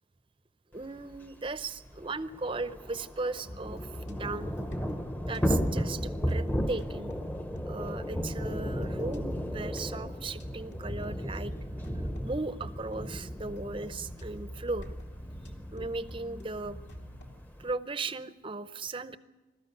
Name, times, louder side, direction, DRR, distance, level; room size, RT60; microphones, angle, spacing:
voice 1, 0.7-4.5 5.3-7.1 7.7-11.5 12.2-14.9 15.7-16.8 17.6-19.2, right 3 dB, 25° right, 13 dB, 0.6 m, -37 dB
Thunder / Rain, 1.1-1.2 1.5-1.6 1.9-17.7, equal, 10° left, 0.8 m, -35 dB
sound 1, 3.4-17.3, equal, 60° left, 2.6 m, -45 dB
21.0 x 13.5 x 9.6 m, 1.1 s
head